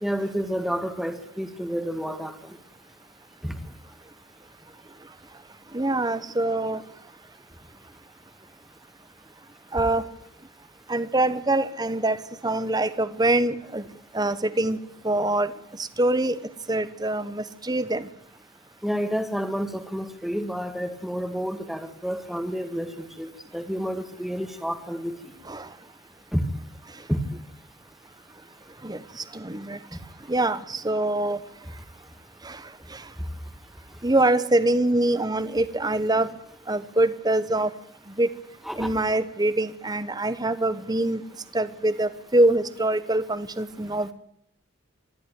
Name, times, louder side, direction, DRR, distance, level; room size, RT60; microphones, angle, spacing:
voice 1, 0.0-2.4 3.4-3.6 18.8-25.3 26.3-26.4 27.1-27.2 38.6-38.9, equal, ahead, 7 dB, 2.0 m, -29 dB
voice 2, 5.7-6.8 9.7-10.0 10.9-13.8 14.1-14.8 15.0-15.5 16.0-16.4 16.7-18.1 25.5-25.7 28.8-29.0 29.3-29.8 30.3-31.4 32.4-32.6 34.0-36.3 36.7-37.7 38.2-38.3 38.7-41.2 41.5-44.1, right 2 dB, 20° right, 14 dB, 1.1 m, -24 dB
25.5 x 12.0 x 9.5 m, 0.72 s
head